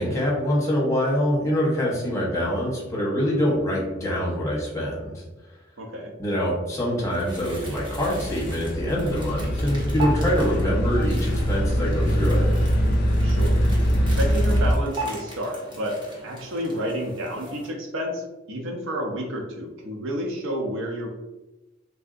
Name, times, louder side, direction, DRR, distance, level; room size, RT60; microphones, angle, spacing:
voice 1, 0.0-5.1 6.2-12.5, equal, 15° left, -4 dB, 0.9 m, -25 dB
voice 2, 5.8-6.1 13.2-13.6 14.1-16.0 16.2-18.2 18.5-21.1, equal, 85° right, 2 dB, 0.6 m, -30 dB
sound 1, 7.1-17.7, right 1 dB, 25° right, 0.8 m, -39 dB
sound 2, 7.4-14.7, equal, 50° left, 0.3 m, -23 dB
3.3 x 2.6 x 2.5 m, 1.1 s
head